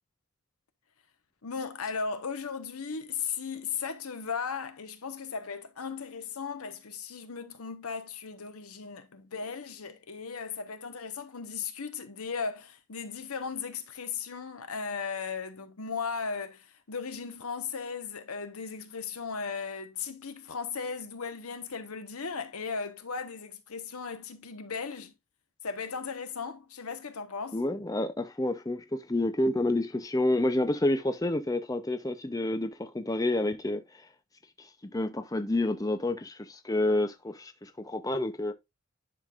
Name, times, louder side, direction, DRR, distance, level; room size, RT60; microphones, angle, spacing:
voice 1, 1.4-25.1 25.6-27.6, left 5 dB, 80° left, 1.0 m, -36 dB
voice 2, 27.5-33.8 34.8-38.5, left 1 dB, 15° left, 0.5 m, -29 dB
10.5 x 5.2 x 2.4 m
head